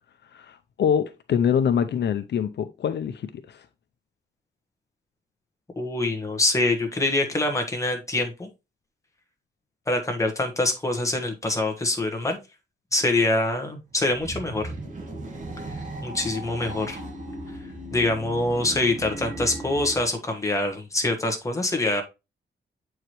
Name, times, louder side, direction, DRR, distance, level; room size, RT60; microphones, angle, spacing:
voice 1, 0.3-3.6, left 8 dB, 65° left, 0.5 m, -25 dB
voice 2, 5.8-8.5 9.9-12.4 12.9-14.7 16.0-17.0 17.9-22.0, left 2 dB, 15° left, 1.3 m, -25 dB
sound 1, 13.9-20.2, right 1 dB, 40° right, 1.7 m, -37 dB
7.9 x 4.8 x 3.0 m
wide cardioid pair, 150°, 19 cm